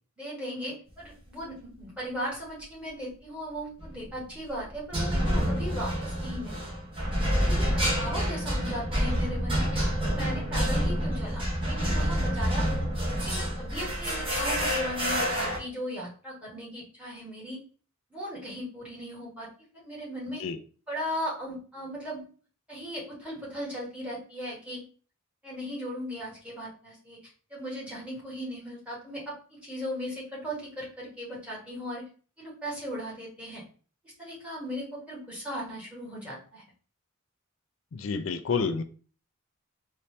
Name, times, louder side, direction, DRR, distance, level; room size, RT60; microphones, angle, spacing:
voice 1, 0.2-6.6 7.4-12.9 13.3-17.6 18.1-19.5 19.7-20.4 20.9-22.2 22.7-24.8 25.4-27.2 27.5-32.0 32.4-33.6 34.2-36.6, equal, 5° right, -5 dB, 1.9 m, -37 dB
sound 1, 3.8-4.1 4.9-15.6, equal, 25° right, 1.5 m, -28 dB
voice 2, 37.9-38.8, left 5 dB, 70° left, 9 dB, 0.4 m, -29 dB
4.1 x 2.7 x 3.3 m, 0.39 s
head